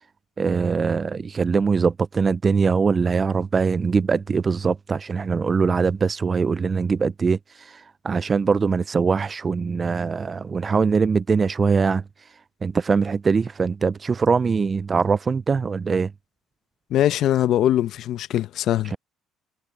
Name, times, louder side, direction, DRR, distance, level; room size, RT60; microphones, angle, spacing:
voice 1, 0.4-12.0 12.6-16.1, right 5 dB, 35° right, 0.3 m, -22 dB
voice 2, 16.9-18.9, left 12 dB, 65° left, 0.9 m, -21 dB
supercardioid pair, 75°, 0 cm